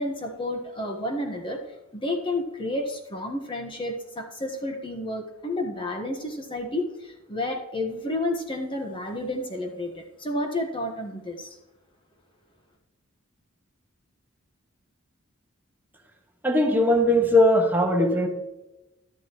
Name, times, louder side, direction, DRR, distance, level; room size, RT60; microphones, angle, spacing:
voice 1, 0.0-1.6 1.9-11.6, left 1 dB, 25° left, 3 dB, 1.2 m, -31 dB
voice 2, 16.4-18.3, left 1 dB, 10° right, 2 dB, 1.4 m, -19 dB
12.5 x 11.0 x 3.0 m, 0.95 s
head